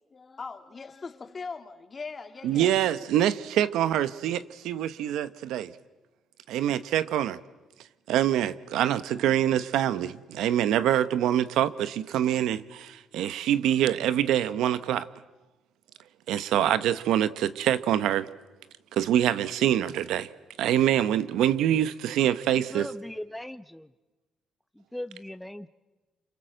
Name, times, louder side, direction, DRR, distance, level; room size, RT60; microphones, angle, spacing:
voice 1, 0.1-2.7, left 4 dB, 35° left, 2.4 m, -40 dB
voice 2, 2.4-5.7 6.5-7.4 8.1-15.1 16.3-18.3 18.9-20.3 20.6-22.9, right 11 dB, 85° right, 1.0 m, -25 dB
voice 3, 22.5-23.9 24.8-25.7, left 1 dB, 5° left, 0.8 m, -39 dB
28.0 x 26.0 x 7.8 m
cardioid pair, 90°, 0 cm